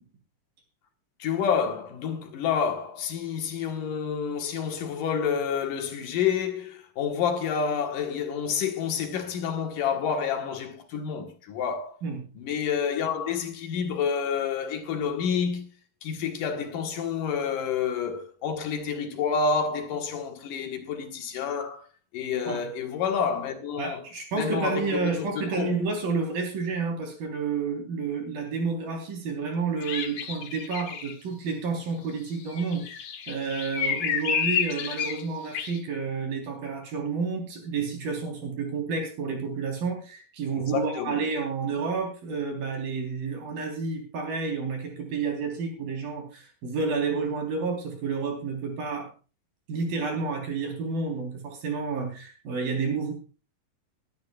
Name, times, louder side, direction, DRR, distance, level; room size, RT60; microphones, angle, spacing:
voice 1, 1.2-12.0 12.4-15.7 16.0-21.8 22.1-24.0 24.3-25.8 40.5-41.2, left 6 dB, 70° left, 3.1 m, -29 dB
voice 2, 23.8-49.1 49.7-53.1, right 4 dB, 80° right, 5.6 m, -30 dB
sound 1, 29.8-31.1 32.5-35.2 35.5-35.8, left 7 dB, 55° left, 2.0 m, -30 dB
24.0 x 10.5 x 2.4 m
omnidirectional pair, 4.0 m